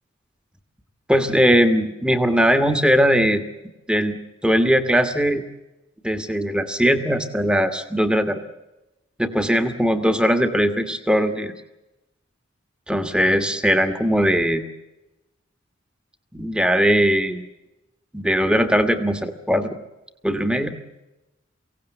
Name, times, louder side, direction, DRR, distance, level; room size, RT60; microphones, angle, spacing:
voice 1, 1.1-3.4 3.9-4.2 4.4-5.4 6.0-8.4 9.2-11.5 12.9-14.6 16.3-17.4 18.1-19.7 20.2-20.8, equal, 5° right, 8 dB, 1.4 m, -19 dB
23.5 x 17.0 x 9.0 m, 1.0 s
head